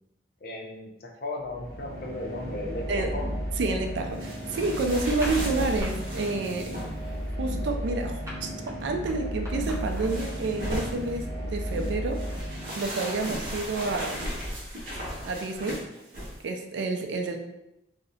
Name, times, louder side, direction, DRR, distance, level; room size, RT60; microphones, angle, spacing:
voice 1, 0.4-2.8 3.1-3.3, left 2 dB, 50° left, 0 dB, 0.5 m, -36 dB
sound 1, 1.4-13.2, equal, 15° left, 0.7 m, -34 dB
voice 2, 3.6-6.7 7.3-14.4 15.3-15.9 16.4-17.4, right 3 dB, 70° right, 5 dB, 0.3 m, -30 dB
sound 2, 4.2-7.1 9.6-11.2 11.7-16.4, equal, 50° right, 0.7 m, -36 dB
sound 3, 5.1-5.9 6.2-6.5 6.8-10.3, equal, 15° right, 0.6 m, -42 dB
2.6 x 2.0 x 2.7 m, 0.87 s
head